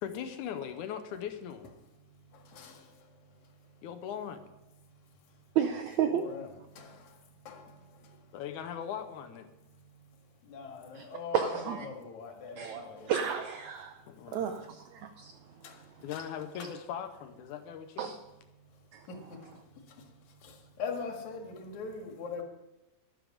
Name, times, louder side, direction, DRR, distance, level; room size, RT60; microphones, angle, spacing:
voice 1, 0.0-1.7 3.8-4.4 8.3-9.5 14.1-14.6 16.0-18.1, left 8 dB, 75° left, 1.9 m, -39 dB
voice 2, 1.9-3.9 4.7-8.5 9.5-13.1 13.8-14.6 14.9-16.8 18.5-22.4, left 5 dB, 60° left, 3.0 m, -45 dB
voice 3, 5.5-6.2 11.3-11.8 12.6-14.0 14.3-15.3 18.0-18.2 18.9-19.0, right 8 dB, 85° right, 1.6 m, -31 dB
12.5 x 12.0 x 5.0 m
omnidirectional pair, 4.2 m